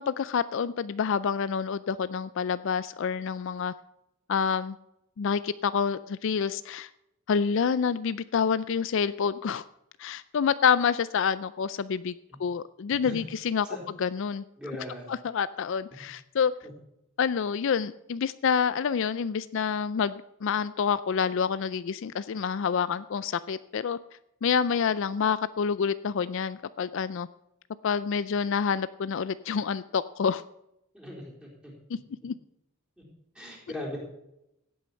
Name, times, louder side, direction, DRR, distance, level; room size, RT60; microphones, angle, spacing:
voice 1, 0.0-3.7 4.3-4.8 5.2-6.9 7.3-9.6 10.0-12.1 12.4-13.7 14.0-14.4 15.1-16.5 17.2-24.0 24.4-27.3 27.8-30.4 32.2-32.3, left 6 dB, 60° left, 16 dB, 0.4 m, -27 dB
voice 2, 14.6-15.1 16.6-16.7 30.9-31.7 33.0-33.1 33.3-34.0, left 1 dB, 5° right, -3 dB, 4.0 m, -39 dB
16.0 x 8.6 x 5.7 m, 0.85 s
head